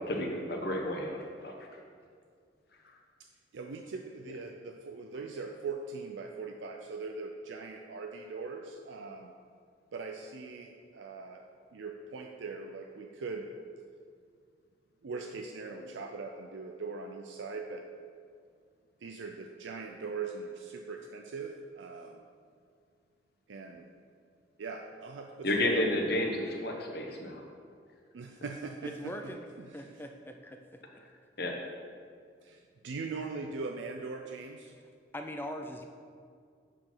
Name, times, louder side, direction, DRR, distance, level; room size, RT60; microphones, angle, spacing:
voice 1, 0.1-1.5 15.7-16.0 25.4-27.4 31.4-31.6, left 1 dB, 55° left, 2 dB, 1.0 m, -31 dB
voice 2, 3.5-9.3 9.9-11.4 11.7-13.5 15.0-17.8 19.0-22.2 23.5-23.9 24.6-25.5 26.1-26.2 28.1-29.3 29.6-29.9 32.4-34.7, right 4 dB, 80° right, 3 dB, 0.5 m, -41 dB
voice 3, 28.8-29.5 29.7-30.8 35.1-35.9, equal, 10° left, 5 dB, 0.4 m, -41 dB
7.7 x 4.9 x 5.5 m, 2.2 s
head